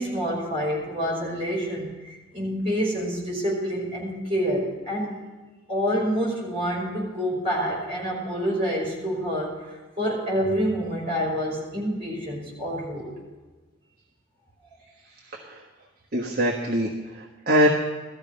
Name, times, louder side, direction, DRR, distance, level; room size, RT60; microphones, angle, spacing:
voice 1, 0.0-5.1 5.7-13.1, equal, 25° right, -3 dB, 5.2 m, -27 dB
voice 2, 16.1-17.7, equal, 45° right, -1 dB, 1.3 m, -23 dB
17.0 x 13.5 x 5.3 m, 1.3 s
head